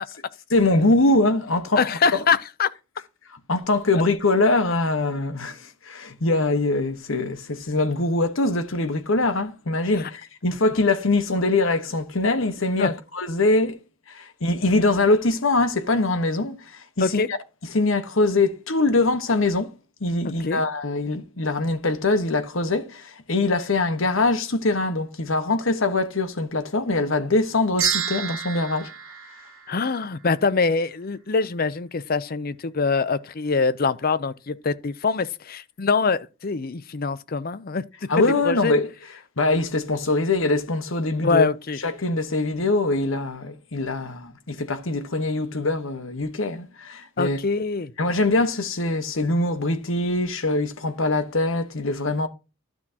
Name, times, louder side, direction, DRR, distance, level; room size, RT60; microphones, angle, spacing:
voice 1, 0.5-2.2 3.5-13.8 14.1-17.4 17.7-19.7 20.0-28.9 38.1-38.9 39.4-41.5 41.8-47.4 48.0-52.3, left 2 dB, 70° left, 1.2 m, -23 dB
voice 2, 1.8-2.7 10.0-10.1 12.8-12.9 17.0-17.3 20.4-20.6 29.7-38.7 41.2-41.8 47.2-47.9, left 4 dB, 45° left, 0.6 m, -24 dB
sound 1, 27.8-30.2, right 8 dB, 80° right, 1.6 m, -29 dB
12.0 x 6.1 x 2.9 m
head